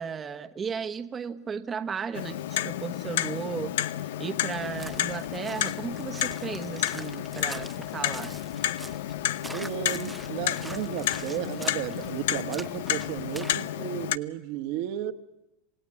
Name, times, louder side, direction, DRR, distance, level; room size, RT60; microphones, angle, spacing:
voice 1, 0.0-8.3, right 6 dB, 20° right, 1.2 m, -35 dB
Clock, 2.1-14.2, left 12 dB, 80° left, 0.8 m, -31 dB
sound 1, 4.5-13.5, right 2 dB, 5° right, 0.9 m, -45 dB
voice 2, 9.5-15.1, right 12 dB, 60° right, 1.5 m, -33 dB
28.0 x 17.5 x 10.0 m
supercardioid pair, 135°, 0 cm